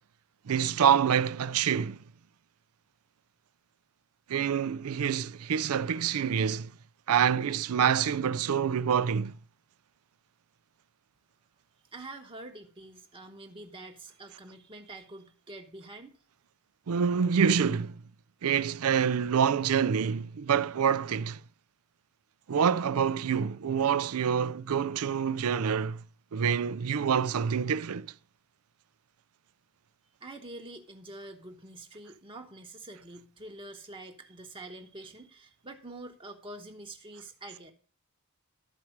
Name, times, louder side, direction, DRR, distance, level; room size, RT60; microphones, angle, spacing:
voice 1, 0.5-2.0 4.3-6.7 7.1-9.3 16.9-18.0 18.4-21.4 22.5-26.0 26.3-28.1, right 7 dB, 70° right, 0.4 m, -26 dB
voice 2, 11.9-16.2 30.2-37.7, right 2 dB, 25° right, 1.1 m, -46 dB
13.0 x 4.7 x 7.1 m
head